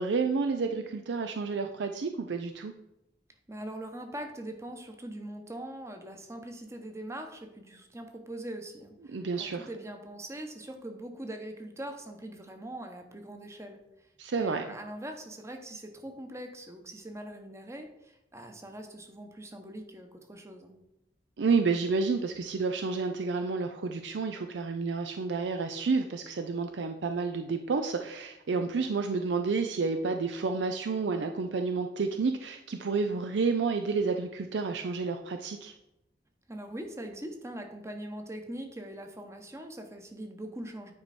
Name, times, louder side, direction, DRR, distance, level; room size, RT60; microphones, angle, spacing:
voice 1, 0.0-2.7 9.1-9.7 14.2-14.6 21.4-35.7, right 4 dB, 80° right, 6 dB, 0.5 m, -30 dB
voice 2, 3.5-13.8 14.3-20.7 36.5-40.9, right 1 dB, 15° right, 5 dB, 0.9 m, -42 dB
9.5 x 4.6 x 4.2 m, 0.88 s
head